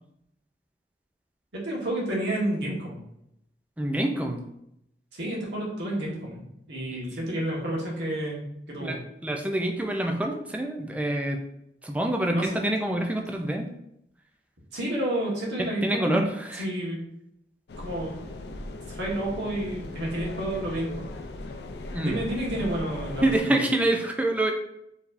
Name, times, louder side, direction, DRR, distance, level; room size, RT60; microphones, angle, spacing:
voice 1, 1.6-3.0 5.1-8.4 8.7-9.0 12.3-12.6 14.7-16.3 16.6-17.0 17.8-18.3 18.9-21.1 22.0-23.5, right 1 dB, 85° right, -4 dB, 1.5 m, -30 dB
voice 2, 3.8-4.4 7.1-7.2 8.8-11.4 11.8-13.7 15.6-16.7 21.9-22.2 23.2-24.5, right 1 dB, 10° right, 3 dB, 0.4 m, -26 dB
sound 1, 17.7-23.4, left 2 dB, 70° left, 0.4 m, -38 dB
4.6 x 3.3 x 2.6 m, 0.77 s
head